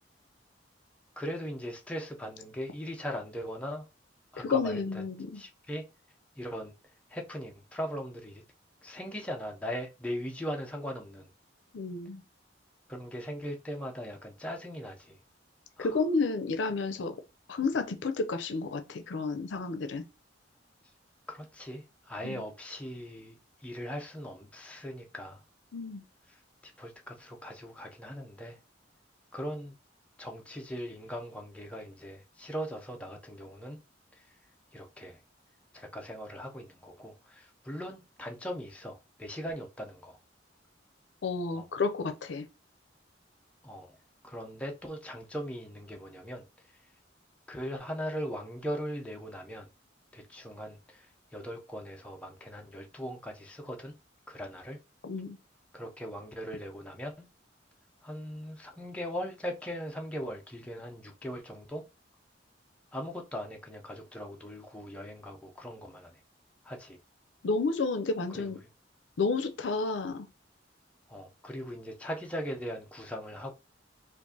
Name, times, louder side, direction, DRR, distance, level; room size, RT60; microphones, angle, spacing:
voice 1, 1.2-3.9 4.3-4.8 5.3-5.8 6.4-6.7 7.1-8.4 8.8-11.3 12.9-15.2 15.8-15.9 21.3-23.3 23.6-25.4 26.6-28.6 29.3-29.7 30.2-33.8 34.7-35.2 35.7-40.2 41.5-41.6 43.6-43.9 44.2-46.4 47.5-49.7 50.1-51.1 51.3-53.9 54.3-54.8 55.7-57.3 58.0-61.8 62.9-66.2 66.6-67.0 68.4-68.5 71.1-73.5, equal, 5° left, 0.5 m, -39 dB
voice 2, 4.4-5.4 11.7-12.2 15.8-17.2 17.5-20.0 22.2-22.4 25.7-26.0 41.2-42.4 55.0-55.4 67.4-68.6 69.2-70.3, left 4 dB, 75° left, 0.5 m, -31 dB
4.6 x 2.5 x 2.7 m
head